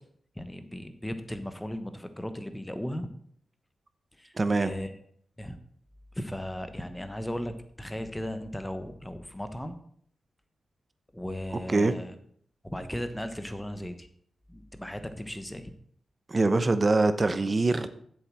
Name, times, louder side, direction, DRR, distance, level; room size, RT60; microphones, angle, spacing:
voice 1, 0.4-3.1 4.2-4.3 4.6-4.9 5.4-5.6 6.1-7.5 7.8-9.8 11.1-12.1 12.6-14.1 14.5-15.7, left 1 dB, 10° left, 9 dB, 1.1 m, -36 dB
voice 2, 4.3-4.7 11.7-11.9 16.3-17.9, right 3 dB, 35° right, 11 dB, 0.9 m, -23 dB
7.8 x 7.2 x 6.2 m, 0.64 s
cardioid pair, 85°, 0 cm